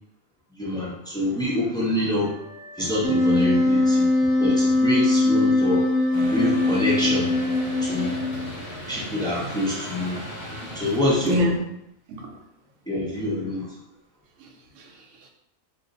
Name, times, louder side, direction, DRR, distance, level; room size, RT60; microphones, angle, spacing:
voice 1, 0.6-2.3 2.8-4.1 4.4-5.8 6.3-7.3 7.8-8.2 8.9-10.2 10.7-11.4 12.9-13.7, left 1 dB, 5° left, -6 dB, 0.4 m, -26 dB
Wind instrument woodwind instrument, 2.2-9.2, left 1 dB, 40° right, 0.7 m, -43 dB
Wind instrument woodwind instrument 2, 3.0-8.4, left 2 dB, 75° left, 1.0 m, -21 dB
sound 1, 6.1-11.4, right 1 dB, 55° left, 1.1 m, -36 dB
voice 2, 11.3-11.6 12.1-12.4 14.4-15.3, equal, 70° right, 2 dB, 0.9 m, -27 dB
2.6 x 2.4 x 3.8 m, 0.81 s
omnidirectional pair, 1.4 m